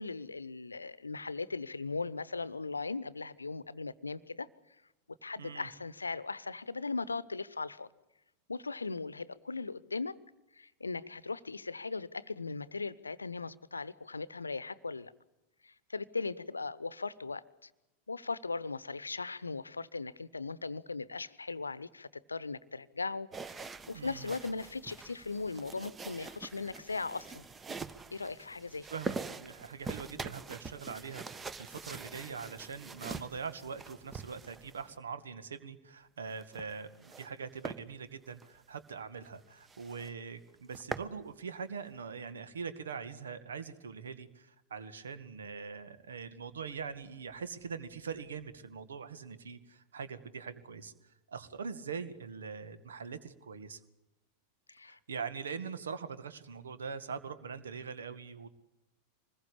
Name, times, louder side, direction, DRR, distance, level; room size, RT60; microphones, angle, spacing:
voice 1, 0.0-4.5 5.2-7.9 8.5-10.2 10.5-15.1 15.6-17.7 18.1-27.4 28.1-28.9 54.7-55.0, left 4 dB, 80° left, 19 dB, 0.9 m, -38 dB
voice 2, 5.4-5.7 23.9-24.3 28.9-50.9 51.3-53.8 54.9-58.5, right 6 dB, 65° right, 12 dB, 1.9 m, -42 dB
sound 1, 23.3-35.0 36.3-37.3 37.6-37.8 38.3-38.5 38.9-39.0 39.3-39.4 39.7-40.1 40.5-41.1, right 4 dB, 15° right, 1.2 m, -44 dB
25.5 x 21.0 x 8.5 m, 0.95 s
figure-of-eight pair, 90°, 0 cm